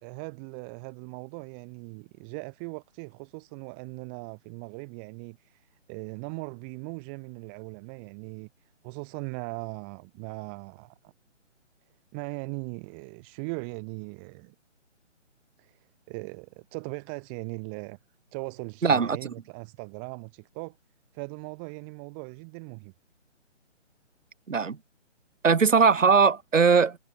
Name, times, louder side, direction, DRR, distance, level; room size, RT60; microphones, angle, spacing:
voice 1, 0.0-11.1 12.1-14.5 15.6-18.0 18.3-20.8 21.1-22.9, right 38 dB, 10° right, 0.8 m, -39 dB
voice 2, 18.8-19.2 24.5-24.8 25.4-27.0, right 5 dB, 85° right, 1.4 m, -20 dB
hypercardioid pair, 155°, 37 cm